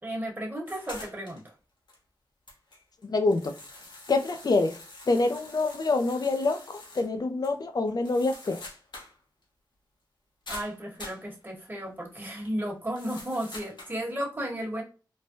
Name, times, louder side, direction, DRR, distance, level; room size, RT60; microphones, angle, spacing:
voice 1, 0.0-1.4 10.5-14.8, right 1 dB, 25° right, 1.3 m, -34 dB
sound 1, 0.7-1.5 1.9-2.0 2.5-7.1 7.4-7.5 7.9-9.2 9.4-9.5 10.5-11.3 12.9-14.0, left 2 dB, 80° left, 1.1 m, -45 dB
voice 2, 3.1-3.5 4.1-4.8 5.1-8.6, left 3 dB, 55° left, 0.5 m, -26 dB
3.2 x 2.2 x 2.7 m
cardioid pair, 55°, 8 cm